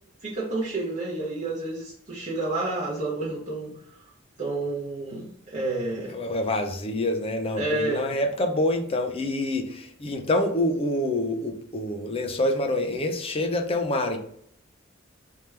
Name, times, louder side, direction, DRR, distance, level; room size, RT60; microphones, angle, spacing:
voice 1, 0.2-3.8 4.4-6.2 7.6-8.1, right 2 dB, 35° right, -7 dB, 0.9 m, -30 dB
voice 2, 6.1-14.2, left 1 dB, 30° left, 4 dB, 0.6 m, -26 dB
3.4 x 2.9 x 3.3 m, 0.67 s
head